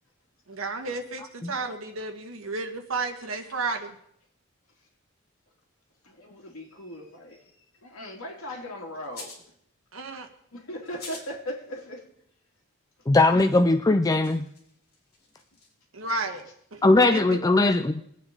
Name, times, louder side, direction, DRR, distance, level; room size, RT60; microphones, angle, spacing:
voice 1, 0.5-3.9 9.9-10.3 15.9-16.8 17.1-17.4, right 3 dB, 70° right, 4 dB, 1.8 m, -32 dB
voice 2, 6.0-9.5 10.5-12.1, equal, 75° left, 0 dB, 2.9 m, -39 dB
sound 1, 9.0-9.5 10.8-11.3 11.7-11.8 13.3-13.4 13.9-15.7, left 3 dB, 50° left, 3.7 m, -45 dB
voice 3, 13.1-14.5 16.8-18.0, left 2 dB, 15° left, 7 dB, 0.4 m, -20 dB
23.0 x 8.8 x 3.9 m, 0.70 s
head